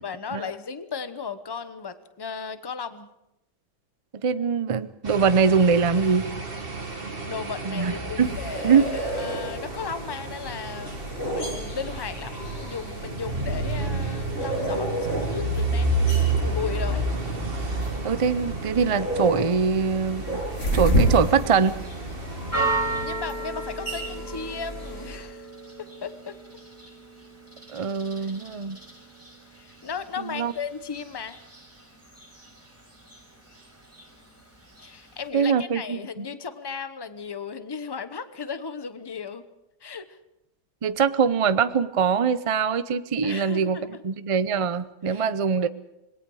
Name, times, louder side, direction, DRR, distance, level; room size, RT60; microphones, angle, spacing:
voice 1, 0.0-3.1 6.9-10.9 11.2-15.9 16.4-17.1 22.5-22.7 23.0-25.5 25.8-26.4 28.2-28.3 29.6-31.4 34.8-39.4 39.8-40.2 43.2-44.0 45.1-45.2, left 6 dB, 20° left, 11 dB, 0.8 m, -35 dB
voice 2, 4.2-6.3 7.6-8.4 8.6-8.9 18.0-20.4 20.7-21.7 27.7-28.8 30.2-30.5 35.3-36.3 40.8-45.7, right 6 dB, 60° right, 13 dB, 0.3 m, -23 dB
sound 1, 5.0-23.0, right 2 dB, 35° right, 2.0 m, -31 dB
sound 2, 8.2-25.2, right 1 dB, 45° left, 6.9 m, -31 dB
Church bell, 21.5-35.3, right 2 dB, 10° right, 4.7 m, -36 dB
26.5 x 21.5 x 4.8 m, 0.88 s
omnidirectional pair, 1.8 m